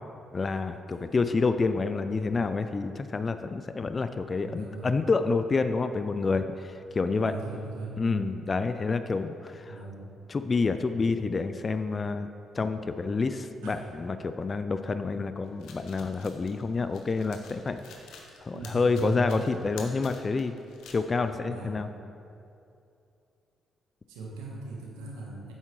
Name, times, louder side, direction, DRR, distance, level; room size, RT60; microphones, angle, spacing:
voice 1, 0.3-7.3 8.0-9.8 10.3-12.3 12.5-17.8 18.4-20.5 20.9-21.9, left 4 dB, 40° left, 9 dB, 0.3 m, -28 dB
voice 2, 4.4-4.9 7.2-7.9 9.7-10.0 13.6-13.9 18.5-19.2 21.4-21.7 22.0-22.1 24.1-25.5, right 2 dB, 85° right, -2 dB, 1.3 m, -39 dB
sound 1, 15.4-21.0, left 5 dB, 75° left, 0.9 m, -49 dB
8.1 x 7.4 x 3.2 m, 2.6 s
hypercardioid pair, 50°, 0 cm